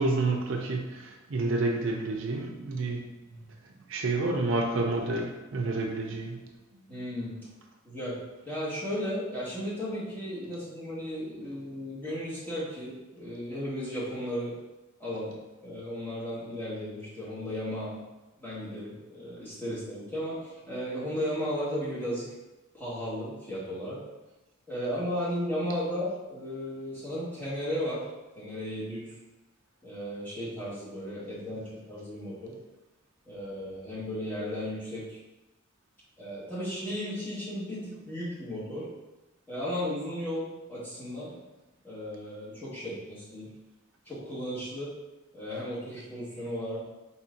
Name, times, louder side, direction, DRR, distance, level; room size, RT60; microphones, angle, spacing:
voice 1, 0.0-3.1 3.9-6.4, right 2 dB, 65° right, 1 dB, 0.5 m, -29 dB
voice 2, 6.9-7.3 7.8-8.2 8.4-14.5 15.0-15.3 15.6-18.0 18.4-22.3 22.7-24.0 24.7-28.0 28.3-29.1 29.8-32.5 33.2-35.2 36.2-38.9 39.5-41.3 41.8-43.5 44.0-44.9 45.3-46.8, equal, 10° left, -10 dB, 1.5 m, -35 dB
4.2 x 4.2 x 2.5 m, 1.0 s
head